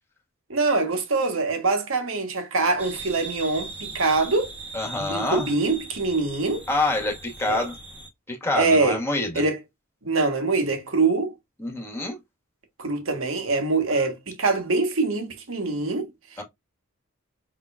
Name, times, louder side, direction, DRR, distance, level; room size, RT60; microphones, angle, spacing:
voice 1, 0.5-4.5 5.0-6.6 7.4-7.7 8.5-9.0 9.3-9.6 10.0-11.3 12.8-16.1, right 3 dB, 70° right, 1.3 m, -24 dB
sound 1, 2.8-8.1, right 3 dB, 10° right, 1.4 m, -39 dB
voice 2, 4.7-5.5 6.7-7.8 8.3-9.4 11.6-12.2 16.4-16.5, left 2 dB, 10° left, 1.4 m, -26 dB
5.0 x 3.8 x 2.4 m
head